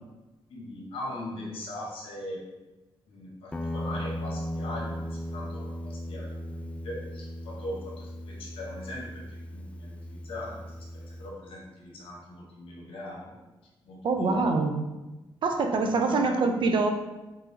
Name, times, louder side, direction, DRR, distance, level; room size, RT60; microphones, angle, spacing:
voice 1, 0.5-2.4 3.1-9.2 9.5-13.3 13.8-14.5 15.9-16.4, left 1 dB, 80° left, -2 dB, 1.1 m, -40 dB
Guitar, 3.5-11.3, equal, 15° left, 0.4 m, -37 dB
voice 2, 14.0-14.8 15.4-16.9, right 3 dB, 65° right, 5 dB, 0.5 m, -24 dB
3.9 x 3.8 x 2.8 m, 1.1 s
cardioid pair, 80°, 9 cm